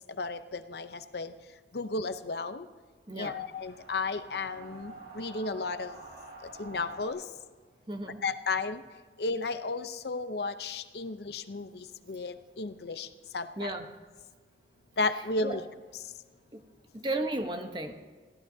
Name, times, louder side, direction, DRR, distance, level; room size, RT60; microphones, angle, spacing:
voice 1, 0.2-1.3 1.7-2.7 3.1-6.0 6.6-7.2 8.2-8.8 9.2-13.1 13.3-13.7 15.0-15.6, left 3 dB, 70° left, 11 dB, 0.7 m, -33 dB
voice 2, 3.1-3.4 6.6-6.7 7.9-8.2 13.6-14.0 15.2-15.7 16.5-16.6 16.9-17.9, right 2 dB, 25° right, 6 dB, 1.0 m, -35 dB
sound 1, 3.5-7.1, right 2 dB, 70° right, 4.1 m, -47 dB
22.0 x 15.0 x 2.8 m, 1.5 s
head